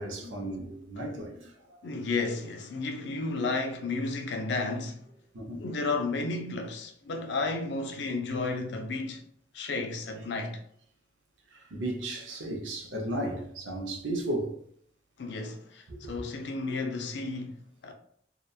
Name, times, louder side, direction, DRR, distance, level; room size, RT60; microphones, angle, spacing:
voice 1, 0.0-1.5 5.3-5.6 9.6-9.7 11.5-14.5 15.9-16.0, right 1 dB, 90° right, 0.6 m, -34 dB
voice 2, 1.8-5.0 5.6-9.3 9.5-10.6 15.2-17.9, left 3 dB, 70° left, 0.4 m, -32 dB
2.8 x 2.2 x 2.3 m
head